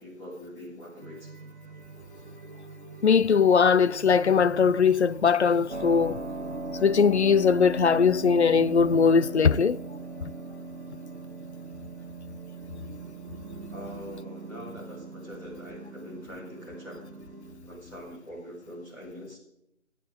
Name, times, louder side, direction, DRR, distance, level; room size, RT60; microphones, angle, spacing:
voice 1, 0.0-1.5 13.7-17.0 17.6-19.4, equal, 5° left, 4.9 m, -43 dB
sound 1, 1.0-17.6, right 3 dB, 35° right, 1.7 m, -46 dB
voice 2, 3.0-6.2 6.8-9.8, left 6 dB, 60° left, 0.5 m, -20 dB
Keyboard (musical), 5.7-18.2, right 3 dB, 60° right, 1.7 m, -39 dB
26.5 x 9.3 x 3.8 m
figure-of-eight pair, 160°, 39 cm